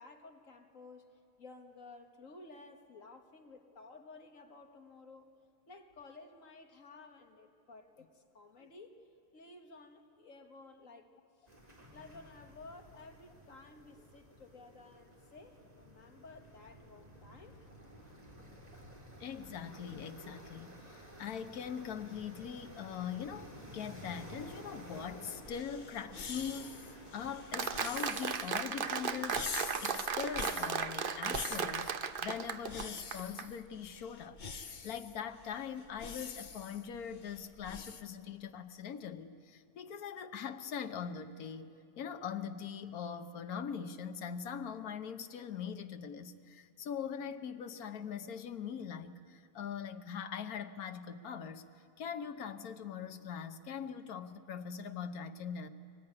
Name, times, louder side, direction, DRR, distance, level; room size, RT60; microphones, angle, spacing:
voice 1, 0.0-5.3 5.7-9.1 9.3-11.1 11.4-11.5 11.9-17.7, left 3 dB, 60° left, 5 dB, 2.0 m, -54 dB
sound 1, 11.5-28.4, equal, 25° right, 3.4 m, -53 dB
voice 2, 19.2-31.9 32.2-51.7 52.0-55.7, left 7 dB, 80° left, 8 dB, 1.4 m, -42 dB
sound 2, 25.4-38.0, left 5 dB, 35° left, 0.9 m, -46 dB
Applause, 27.5-33.5, right 6 dB, 45° right, 0.9 m, -36 dB
23.5 x 19.5 x 9.8 m, 2.8 s
omnidirectional pair, 1.5 m